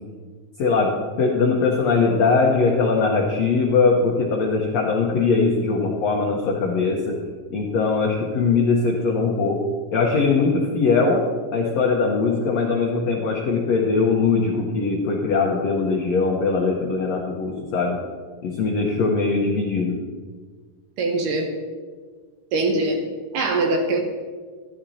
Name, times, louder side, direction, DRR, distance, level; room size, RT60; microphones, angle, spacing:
voice 1, 0.6-7.2 7.5-9.6 9.9-11.2 11.5-18.0 18.4-20.0, left 4 dB, 80° left, -1 dB, 1.5 m, -21 dB
voice 2, 21.0-21.5 22.5-23.0 23.3-24.0, right 2 dB, 70° right, 3 dB, 2.1 m, -22 dB
13.5 x 11.5 x 2.8 m, 1.5 s
omnidirectional pair, 4.5 m